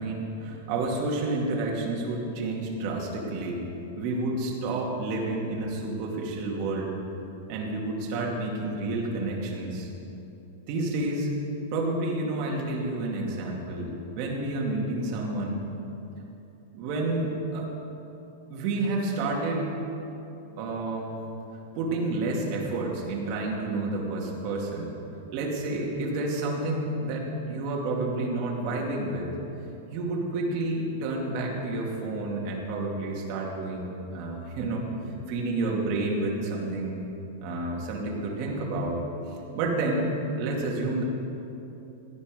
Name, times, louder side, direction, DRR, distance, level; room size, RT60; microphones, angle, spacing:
voice 1, 0.0-3.6 3.9-7.0 7.5-9.9 10.7-11.3 11.7-15.7 16.7-17.7 18.5-19.8 20.6-21.2 21.7-25.0 25.3-29.3 29.9-34.9 35.3-37.0 37.4-39.0 39.3-41.0, right 2 dB, 35° right, -2 dB, 2.5 m, -30 dB
17.5 x 10.5 x 5.2 m, 2.9 s
supercardioid pair, 175°, 0 cm